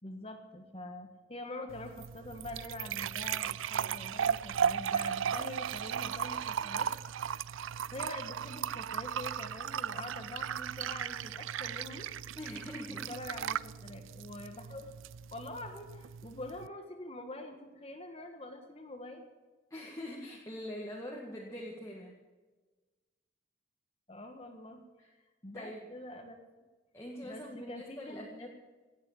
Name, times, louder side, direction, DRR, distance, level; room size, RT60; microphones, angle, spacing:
voice 1, 0.0-6.9 7.9-12.1 12.9-14.9 15.3-19.3 24.1-24.8 25.4-26.4 27.2-28.5, left 1 dB, 30° left, 5 dB, 1.4 m, -45 dB
sound 1, 1.7-16.7, right 8 dB, 80° right, 0.4 m, -36 dB
voice 2, 12.4-13.1 19.7-22.1 25.0-25.1 25.5-25.9 26.9-28.5, left 1 dB, 15° left, -2 dB, 1.8 m, -43 dB
17.5 x 8.2 x 8.6 m, 1.3 s
head